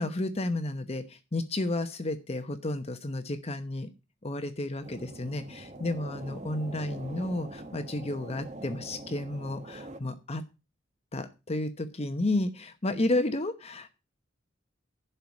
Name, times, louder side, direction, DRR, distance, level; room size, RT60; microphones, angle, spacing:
voice 1, 0.0-3.9 4.2-10.4 11.1-14.0, left 2 dB, 35° left, 8 dB, 0.9 m, -32 dB
sound 1, 4.8-10.0, right 2 dB, 35° right, 1.2 m, -44 dB
11.5 x 4.7 x 8.3 m, 0.29 s
head